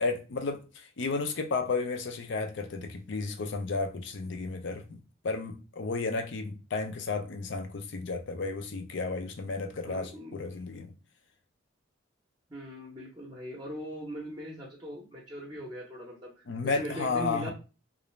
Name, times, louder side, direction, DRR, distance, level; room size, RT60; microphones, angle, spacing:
voice 1, 0.0-10.9 16.5-17.5, left 4 dB, 65° left, 0.5 m, -33 dB
voice 2, 9.9-10.4 12.5-16.3 16.6-17.5, equal, 20° right, 0.6 m, -40 dB
2.5 x 2.0 x 3.1 m
head